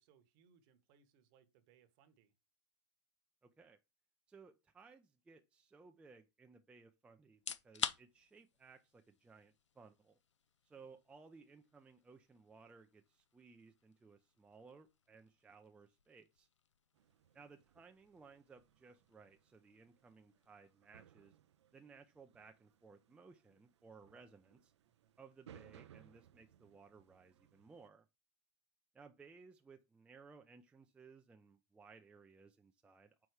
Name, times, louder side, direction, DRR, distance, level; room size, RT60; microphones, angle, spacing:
voice 1, 0.0-2.3 24.8-25.2, right 7 dB, 45° right, 1.0 m, -71 dB
voice 2, 3.4-3.8 4.3-10.2 10.6-16.5 17.3-21.4 21.7-24.7 25.2-28.1 28.9-33.3, right 4 dB, 5° right, 0.4 m, -61 dB
sound 1, 7.3-22.1, left 7 dB, 85° left, 0.5 m, -51 dB
sound 2, 16.9-27.9, right 10 dB, 75° right, 0.4 m, -65 dB
4.7 x 4.2 x 4.6 m
hypercardioid pair, 115°, 15 cm